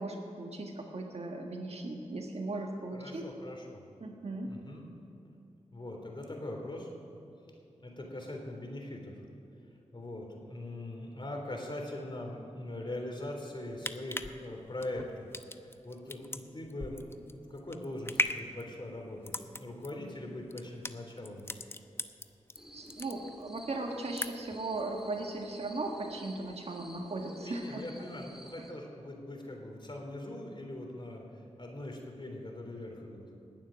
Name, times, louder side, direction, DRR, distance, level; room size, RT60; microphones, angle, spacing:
voice 1, 0.0-3.3 4.0-4.5 22.7-27.8, right 2 dB, 55° right, 1 dB, 1.6 m, -37 dB
voice 2, 2.9-3.8 4.4-4.8 5.7-6.9 7.8-9.2 9.9-15.3 15.8-21.5 27.4-31.2 31.6-33.2, left 1 dB, 40° left, 1 dB, 3.3 m, -41 dB
sound 1, 13.6-22.6 22.9-23.6 23.9-24.6 25.0-25.1, left 2 dB, 20° left, 0.7 m, -38 dB
sound 2, 22.6-28.7, equal, 5° right, 1.8 m, -52 dB
19.5 x 7.4 x 6.4 m, 2.9 s
cardioid pair, 40°, 12 cm